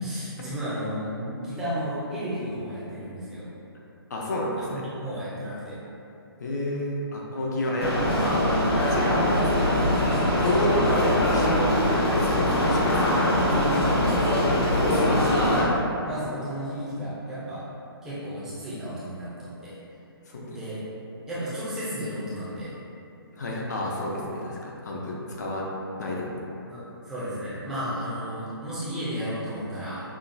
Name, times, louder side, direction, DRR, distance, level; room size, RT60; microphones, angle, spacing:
voice 1, 0.0-3.5 4.7-5.8 7.6-7.8 10.5-11.3 12.6-12.9 13.2-14.5 14.9-17.6 18.0-19.7 20.5-20.8 21.3-22.7 26.7-30.0, equal, 5° right, -12 dB, 0.5 m, -33 dB
voice 2, 4.1-4.9 6.4-8.5 8.9-9.8 10.4-11.7 12.1-13.3 14.9-15.1 20.3-20.6 23.3-25.7 26.0-26.5, left 1 dB, 45° left, -3 dB, 0.5 m, -30 dB
sound 1, 7.8-15.6, left 1 dB, 80° left, 1.1 m, -22 dB
5.7 x 2.2 x 2.5 m, 2.7 s
hypercardioid pair, 165°, 13 cm